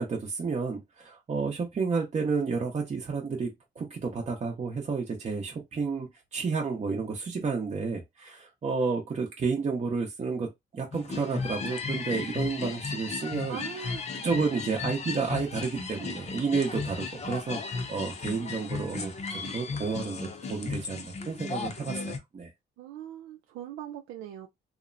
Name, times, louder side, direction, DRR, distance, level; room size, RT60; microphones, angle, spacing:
voice 1, 0.0-13.6 14.2-22.5, right 4 dB, 35° right, 0.8 m, -31 dB
sound 1, 10.9-22.2, left 4 dB, 35° left, 0.6 m, -35 dB
voice 2, 13.5-14.5 22.8-24.5, right 10 dB, 85° right, 0.4 m, -41 dB
2.8 x 2.1 x 2.5 m
cardioid pair, 90°, 20 cm